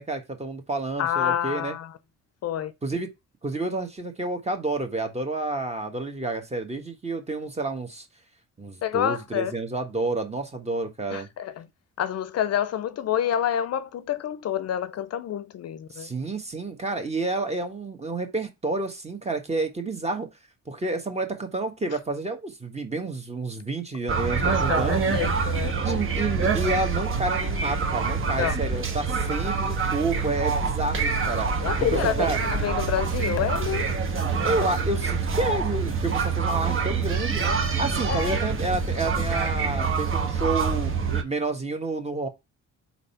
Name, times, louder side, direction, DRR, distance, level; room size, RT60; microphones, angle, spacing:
voice 1, 0.0-1.7 2.8-3.1 3.4-8.0 8.6-11.3 15.9-20.3 20.7-25.0 25.8-32.4 34.4-40.9 41.2-42.3, right 2 dB, 20° right, 1.5 m, -30 dB
voice 2, 1.0-1.9 2.4-2.7 8.8-9.5 11.1-11.6 12.0-16.1 24.4-26.0 28.4-28.5 31.6-33.9 38.1-38.4, left 10 dB, 55° left, 0.6 m, -28 dB
sound 1, 24.1-41.2, right 5 dB, 45° right, 1.2 m, -26 dB
4.3 x 4.1 x 5.5 m
cardioid pair, 90°, 30 cm